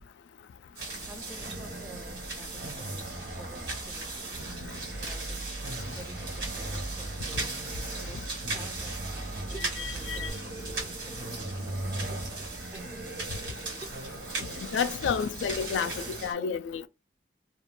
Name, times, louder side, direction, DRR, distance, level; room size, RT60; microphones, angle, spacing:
voice 1, 0.6-5.6 5.9-7.5 8.0-11.4 11.6-13.1 13.5-13.9 14.4-14.5, right 2 dB, 10° right, 0.4 m, -51 dB
sound 1, 0.7-16.3, right 3 dB, 75° right, 1.3 m, -39 dB
sound 2, 0.8-16.3, right 1 dB, 55° right, 0.7 m, -40 dB
sound 3, 4.7-10.3, right 3 dB, 45° left, 0.6 m, -44 dB
voice 2, 9.8-10.3 14.6-16.9, left 7 dB, 90° left, 0.3 m, -31 dB
2.3 x 2.1 x 3.1 m
head